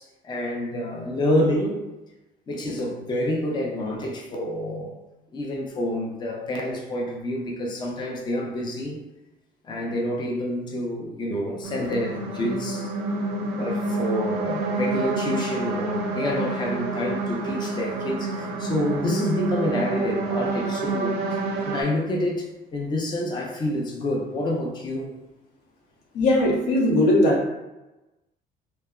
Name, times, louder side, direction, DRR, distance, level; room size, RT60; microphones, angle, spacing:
voice 1, 0.0-1.8 2.5-4.9 5.3-9.0 9.6-12.9 13.5-21.4 21.7-25.2, left 1 dB, 25° left, 0 dB, 0.5 m, -28 dB
sound 1, 11.6-21.8, right 3 dB, 90° right, 0.4 m, -28 dB
voice 2, 26.1-27.5, left 1 dB, 90° left, -2 dB, 0.7 m, -19 dB
3.3 x 2.0 x 2.3 m, 1.0 s
cardioid pair, 110°, 17 cm